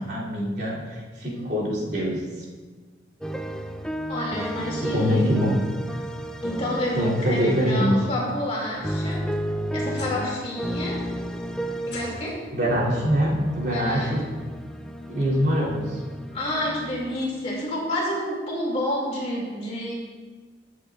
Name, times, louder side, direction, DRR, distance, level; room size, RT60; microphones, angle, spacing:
voice 1, 0.0-2.4 4.8-5.6 7.0-8.0 12.5-14.2 15.1-16.0, equal, 65° right, -7 dB, 2.8 m, -24 dB
voice 2, 1.2-1.8 4.1-5.3 6.4-9.3 9.7-11.1 11.9-12.4 13.6-14.1 16.3-19.9, left 1 dB, 35° left, -3 dB, 2.3 m, -29 dB
sound 1, 3.2-8.1 8.6-12.3 12.6-17.4, equal, 5° left, 0.4 m, -33 dB
sound 2, 9.0-10.4 10.7-11.2 11.8-12.5 13.7-13.8 14.4-14.5 16.1-16.2, left 1 dB, 65° left, 2.8 m, -42 dB
15.0 x 7.7 x 2.4 m, 1.5 s
head